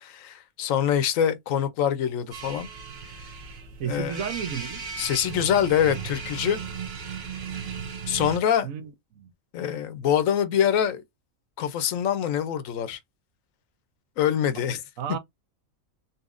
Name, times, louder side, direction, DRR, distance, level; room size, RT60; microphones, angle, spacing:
voice 1, 0.0-2.7 3.8-4.2 5.0-6.6 8.1-8.7 9.5-11.0 11.6-13.0 14.2-14.8, left 9 dB, 75° left, 1.0 m, -24 dB
sound 1, 2.3-8.4, right 6 dB, 50° right, 1.1 m, -36 dB
voice 2, 3.8-4.8 8.6-9.3 15.0-15.2, right 8 dB, 75° right, 1.2 m, -33 dB
4.1 x 2.7 x 2.5 m
omnidirectional pair, 1.4 m